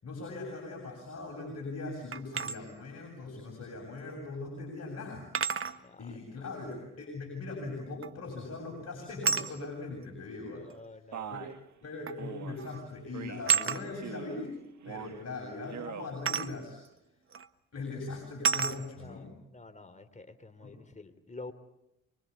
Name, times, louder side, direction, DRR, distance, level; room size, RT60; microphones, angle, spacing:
voice 1, 0.0-5.3 6.0-10.7 11.3-11.4 11.8-14.6 14.8-16.8 17.7-19.3 20.6-20.8, left 3 dB, 45° left, -1 dB, 7.5 m, -40 dB
sound 1, 2.1-2.6 4.1-4.2 5.3-5.8 8.0-8.3 9.2-9.5 10.7-10.8 12.1-12.3 12.6-12.8 13.5-13.8 16.3-16.5 17.3-17.5 18.4-18.8, right 6 dB, 40° right, 1.3 m, -29 dB
voice 2, 5.8-6.1 10.5-11.4 19.0-21.5, left 3 dB, 20° left, 9 dB, 3.2 m, -49 dB
Male speech man speaking, 11.1-11.6 12.2-12.6 13.1-13.5 13.9-14.4 14.8-15.2 15.6-16.1, right 9 dB, 55° right, 1.7 m, -42 dB
25.0 x 24.0 x 8.4 m, 0.84 s
hypercardioid pair, 50°, 35 cm